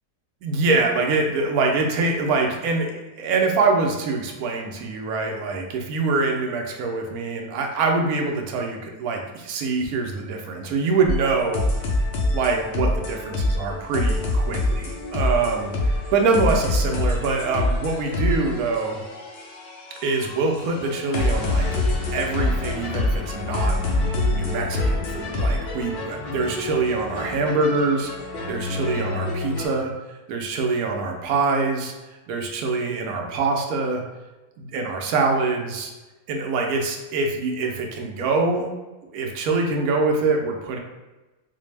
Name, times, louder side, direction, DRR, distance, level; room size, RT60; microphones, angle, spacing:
voice 1, 0.4-11.6 12.3-19.0 20.0-21.7 22.1-23.8 24.3-28.1 28.5-29.9 30.3-31.9 32.3-34.0 34.6-35.9 36.3-38.7 39.1-40.8, right 3 dB, 80° right, 2 dB, 1.1 m, -24 dB
sound 1, 11.0-29.7, left 2 dB, 60° left, 0.7 m, -26 dB
4.0 x 2.0 x 3.2 m, 1.1 s
omnidirectional pair, 1.6 m